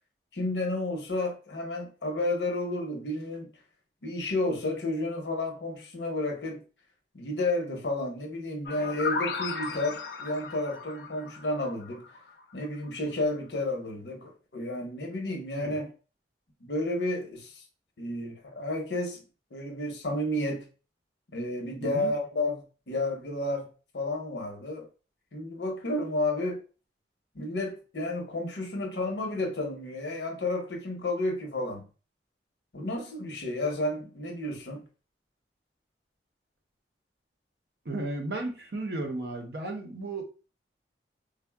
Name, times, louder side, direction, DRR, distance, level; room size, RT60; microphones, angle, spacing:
voice 1, 0.3-3.5 4.0-6.6 7.1-12.0 12.5-15.9 16.6-17.6 18.0-19.2 19.5-20.7 21.3-23.7 23.9-24.9 25.3-26.6 27.3-31.8 32.7-34.8, left 2 dB, 80° left, 0.8 m, -31 dB
sound 1, 8.7-12.4, left 4 dB, 65° left, 0.4 m, -35 dB
voice 2, 21.8-22.1 37.8-40.2, right 2 dB, 65° right, 0.7 m, -34 dB
3.6 x 2.1 x 2.2 m
head